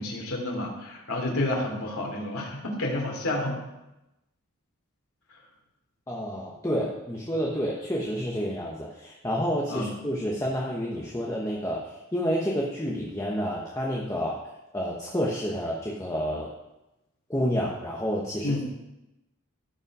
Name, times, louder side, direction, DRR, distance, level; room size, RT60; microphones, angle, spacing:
voice 1, 0.0-3.6 9.7-9.9 18.4-18.6, left 1 dB, 80° left, -1 dB, 3.1 m, -30 dB
voice 2, 6.1-14.4 14.7-16.5 17.3-18.6, equal, 15° left, -3 dB, 1.0 m, -29 dB
16.0 x 5.4 x 4.9 m, 0.95 s
head